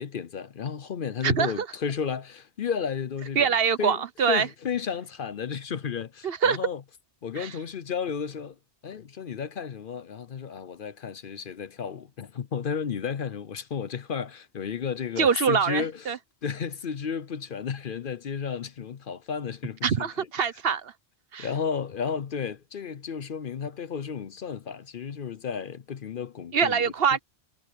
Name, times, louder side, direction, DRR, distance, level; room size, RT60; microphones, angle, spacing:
voice 1, 0.0-3.5 3.8-4.0 4.3-6.8 7.2-8.6 8.8-16.0 16.4-20.3 21.4-26.9, left 6 dB, 55° left, 0.8 m, -33 dB
voice 2, 1.2-1.7 3.4-4.5 6.2-6.6 7.4-7.5 15.2-16.2 19.8-20.9 21.3-21.5 26.5-27.2, right 6 dB, 60° right, 1.1 m, -24 dB
omnidirectional pair, 1.1 m